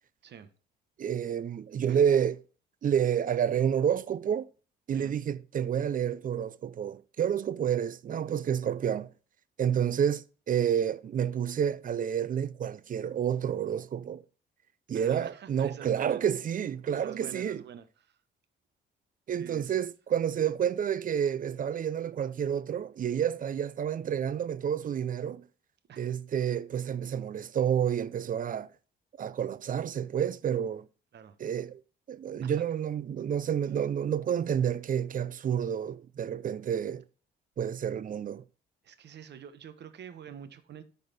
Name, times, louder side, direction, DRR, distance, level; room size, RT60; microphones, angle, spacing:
voice 1, 1.0-2.4 2.8-4.5 4.9-9.1 9.6-14.2 14.9-17.6 19.3-25.4 26.0-28.7 29.2-30.9 31.4-31.8 32.1-37.0 37.6-38.4, right 8 dB, 45° right, 0.5 m, -29 dB
voice 2, 14.9-16.2 16.9-18.2 19.3-19.8 25.9-26.2 31.1-31.4 32.4-32.6 38.8-40.8, right 8 dB, 60° right, 1.1 m, -47 dB
10.5 x 4.2 x 4.1 m
cardioid pair, 90°, 20 cm